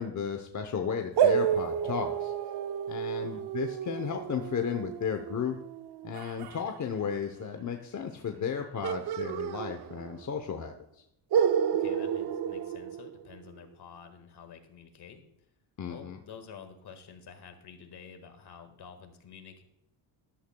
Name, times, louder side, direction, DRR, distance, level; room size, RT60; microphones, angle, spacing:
voice 1, 0.0-2.3 2.9-5.6 6.0-10.7 15.8-16.2, left 7 dB, 35° left, 5 dB, 0.8 m, -34 dB
Distant howling pupper, 1.2-6.6 8.8-10.3 10.6-10.7 11.3-13.5, right 8 dB, 55° right, 0.6 m, -30 dB
voice 2, 11.7-15.3 15.9-19.6, left 6 dB, 55° left, 7 dB, 1.7 m, -49 dB
13.0 x 11.5 x 2.2 m, 0.79 s
cardioid pair, 135°, 48 cm